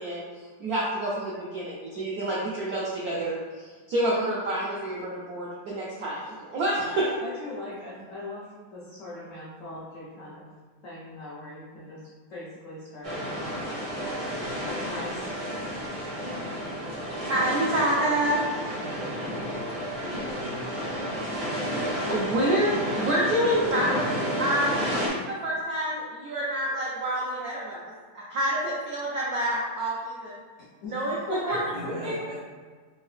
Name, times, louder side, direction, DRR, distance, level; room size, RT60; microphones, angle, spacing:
voice 1, 0.0-7.1 15.1-15.3 17.3-18.4 21.7-24.0 24.4-30.3 30.9-31.6 32.0-32.1, right 1 dB, 85° right, -5 dB, 0.8 m, -28 dB
voice 2, 7.2-10.5 10.8-13.6 14.6-15.5 23.7-24.0 25.7-25.9 30.8-30.9 31.3-32.1, left 1 dB, 80° left, -7 dB, 0.7 m, -39 dB
sound 1, 13.0-25.1, equal, 35° right, 0.5 m, -31 dB
voice 3, 20.0-21.3 31.5-32.4, equal, 60° right, -4 dB, 1.2 m, -40 dB
3.6 x 2.7 x 3.3 m, 1.5 s
omnidirectional pair, 2.3 m